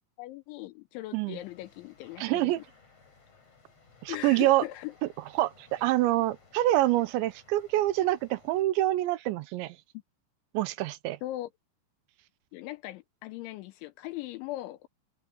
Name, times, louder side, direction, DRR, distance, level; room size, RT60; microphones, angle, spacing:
voice 1, 0.2-2.5 4.1-4.9 11.2-11.5 12.5-14.9, left 16 dB, 80° left, 3.2 m, -39 dB
sound 1, 1.4-8.6, left 4 dB, 30° left, 6.3 m, -59 dB
voice 2, 2.2-2.6 4.0-4.6 5.0-5.1 5.4-9.8 10.5-11.2, right 16 dB, 80° right, 3.0 m, -26 dB
open air
omnidirectional pair, 5.6 m